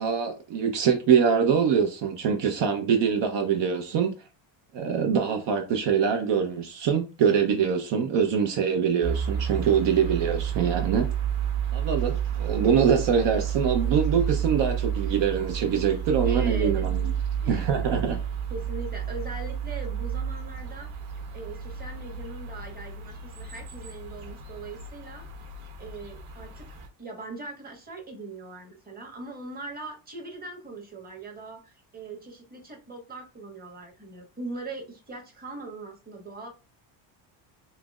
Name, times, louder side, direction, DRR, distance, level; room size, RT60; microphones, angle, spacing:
voice 1, 0.0-4.1 4.7-11.1 11.7-17.1 17.5-18.2, right 7 dB, 60° right, 0.8 m, -24 dB
sound 1, 9.0-26.9, right 8 dB, 80° right, 1.1 m, -31 dB
voice 2, 16.2-16.9 17.4-17.7 18.5-20.9 21.3-25.2 25.8-26.6 27.0-36.5, right 2 dB, 20° right, 1.2 m, -41 dB
5.7 x 2.0 x 2.3 m
cardioid pair, 105°, 48 cm